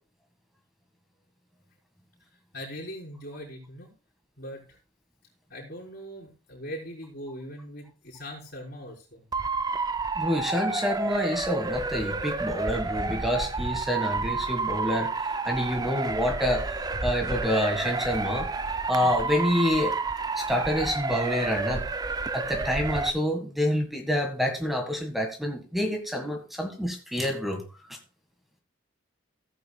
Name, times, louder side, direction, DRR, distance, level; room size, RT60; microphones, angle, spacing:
voice 1, 2.5-3.9 4.4-4.8 5.5-9.2, equal, 50° left, -6 dB, 3.8 m, -40 dB
Motor vehicle (road) / Siren, 9.3-23.1, right 3 dB, 20° right, 0.4 m, -30 dB
voice 2, 10.1-15.1 15.4-16.7 17.0-18.5 18.9-20.0 20.3-21.9 22.3-27.6 27.9-28.0, equal, ahead, 3 dB, 1.7 m, -27 dB
15.5 x 8.6 x 2.3 m, 0.33 s
head